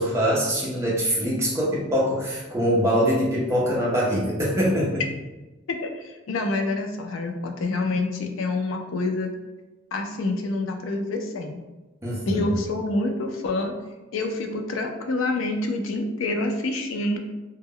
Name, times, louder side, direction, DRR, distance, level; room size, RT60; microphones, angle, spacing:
voice 1, 0.0-5.0 12.0-12.5, equal, 15° right, -5 dB, 0.5 m, -23 dB
voice 2, 5.7-9.3 9.9-11.6 12.3-13.7 14.1-17.2, left 2 dB, 75° left, 4 dB, 0.4 m, -27 dB
2.1 x 2.0 x 3.6 m, 1.1 s
head